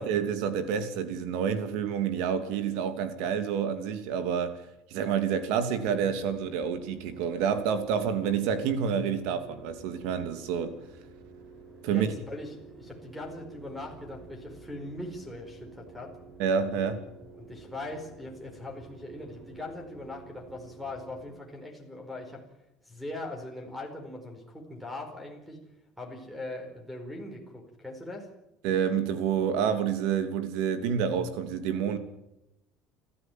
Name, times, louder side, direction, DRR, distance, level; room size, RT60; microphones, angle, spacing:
voice 1, 0.0-4.6 4.9-10.8 11.8-12.1 16.4-17.0 28.6-32.0, right 7 dB, 80° right, 2.9 m, -28 dB
sound 1, 5.7-21.2, right 4 dB, 25° right, 7.5 m, -50 dB
voice 2, 11.9-16.1 17.4-22.4 22.8-25.6 26.0-28.3, left 2 dB, ahead, 4.7 m, -40 dB
30.0 x 14.0 x 9.3 m
cardioid pair, 155°, 0 cm